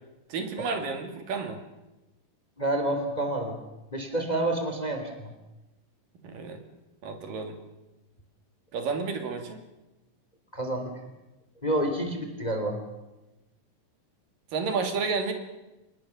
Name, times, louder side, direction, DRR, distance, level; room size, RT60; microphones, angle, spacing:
voice 1, 0.3-1.6 6.2-6.6 7.0-7.6 8.7-9.6 14.5-15.3, right 4 dB, 75° right, 6 dB, 4.3 m, -31 dB
voice 2, 2.6-3.6 3.9-5.3 10.5-10.9 11.6-12.8, right 1 dB, 10° left, 6 dB, 3.0 m, -28 dB
26.5 x 20.5 x 7.2 m, 1.0 s
omnidirectional pair, 4.0 m